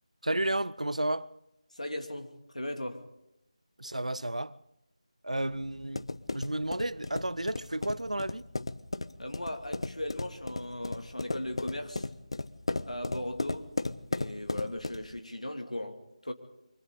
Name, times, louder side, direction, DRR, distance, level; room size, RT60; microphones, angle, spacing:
voice 1, 0.2-1.3 3.8-4.6 5.2-8.5, right 1 dB, 80° right, 0.7 m, -32 dB
voice 2, 1.7-3.0 9.2-12.1 12.9-13.7 14.1-16.3, left 1 dB, 75° left, 2.6 m, -38 dB
sound 1, 5.4-15.2, left 2 dB, 50° left, 0.7 m, -36 dB
28.0 x 24.0 x 3.9 m
figure-of-eight pair, 165°, 4 cm